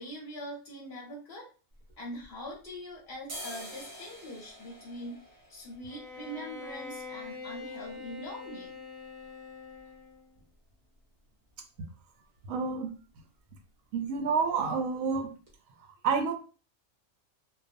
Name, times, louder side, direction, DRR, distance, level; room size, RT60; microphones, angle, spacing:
voice 1, 0.0-1.5 2.0-8.7, equal, 50° left, -2 dB, 0.8 m, -43 dB
sound 1, 1.7-2.8 3.1-10.8 11.1-11.2 11.5-12.1 12.4-12.6 12.9-13.1 13.4-14.1 14.4-14.6 15.1-15.2 15.5-15.6, equal, 45° right, 0.7 m, -49 dB
Bowed string instrument, 5.9-10.3, left 4 dB, 20° right, 1.1 m, -44 dB
voice 2, 12.5-12.9 13.9-15.3 16.0-16.3, right 5 dB, 80° right, 6 dB, 1.0 m, -28 dB
2.4 x 2.2 x 2.5 m, 0.36 s
omnidirectional pair, 1.4 m